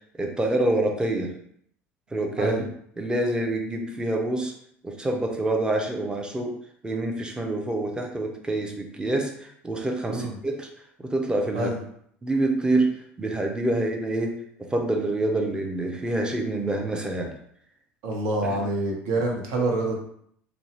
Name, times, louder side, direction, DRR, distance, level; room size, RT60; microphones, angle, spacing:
voice 1, 0.2-1.3 2.1-2.6 3.0-4.5 4.8-6.5 6.8-10.7 11.0-11.7 12.2-17.3 18.5-18.6, right 2 dB, 15° right, 2 dB, 0.5 m, -26 dB
voice 2, 18.0-20.0, right 2 dB, 65° right, 1 dB, 0.7 m, -26 dB
2.6 x 2.1 x 2.9 m, 0.67 s
hypercardioid pair, 70°, 6 cm